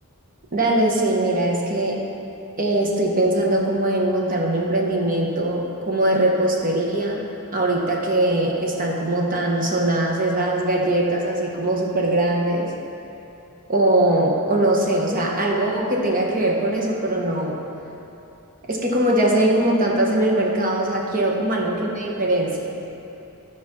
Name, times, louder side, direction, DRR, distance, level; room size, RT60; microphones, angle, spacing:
voice 1, 0.5-2.0 2.6-7.3 7.5-12.7 13.7-17.6 18.7-22.8, right 1 dB, 40° right, -1 dB, 1.1 m, -21 dB
13.0 x 5.0 x 4.2 m, 2.8 s
head